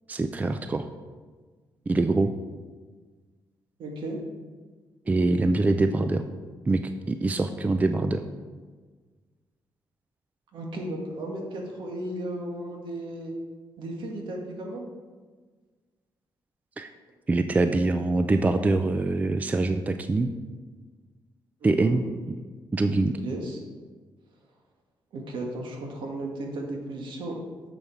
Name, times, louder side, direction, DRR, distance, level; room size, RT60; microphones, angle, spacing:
voice 1, 0.1-0.9 1.9-2.3 5.1-6.2 6.7-6.8 7.1-8.2 16.8-16.9 17.3-20.3 21.6-22.0 22.7-23.2, right 2 dB, 20° right, 8 dB, 0.4 m, -24 dB
voice 2, 3.8-4.2 10.5-13.3 13.8-14.8 21.6-22.0 23.2-23.6 25.1-27.4, right 1 dB, 70° right, 1 dB, 1.7 m, -35 dB
7.0 x 7.0 x 4.6 m, 1.4 s
cardioid pair, 120°, 8 cm